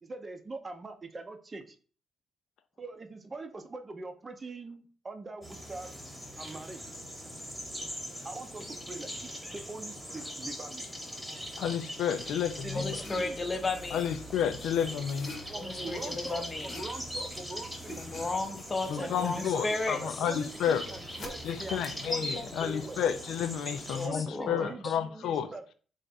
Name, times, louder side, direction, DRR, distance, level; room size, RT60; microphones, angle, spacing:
voice 1, 0.0-1.8 2.8-5.9 6.4-6.8 8.2-10.9 12.6-13.3 15.5-18.0 18.9-19.6 20.0-23.0 24.0-25.7, right 3 dB, 30° right, 0.6 m, -43 dB
sound 1, 5.4-24.1, equal, 5° right, 1.1 m, -41 dB
voice 2, 11.6-12.9 13.9-15.3 18.9-20.9 21.4-25.5, left 8 dB, 75° left, 0.4 m, -31 dB
voice 3, 12.7-14.1 15.6-16.8 18.0-20.2 23.9-24.9, left 3 dB, 25° left, 0.6 m, -34 dB
sound 2, 12.8-22.8, left 3 dB, 60° left, 0.9 m, -50 dB
3.5 x 2.5 x 4.1 m
cardioid pair, 90°, 0 cm